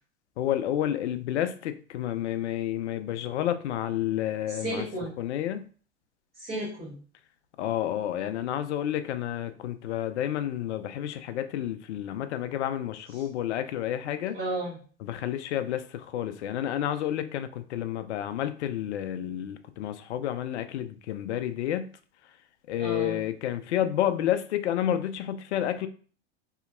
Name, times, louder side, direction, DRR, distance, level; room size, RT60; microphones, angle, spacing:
voice 1, 0.4-4.8 5.2-5.6 7.6-14.4 15.1-21.9 22.7-25.9, left 11 dB, 70° left, 10 dB, 0.5 m, -30 dB
voice 2, 4.5-5.2 6.4-7.0 14.3-14.8 22.8-23.3, right 1 dB, 30° right, -8 dB, 1.2 m, -33 dB
2.8 x 2.7 x 2.5 m, 0.41 s
hypercardioid pair, 90°, 35 cm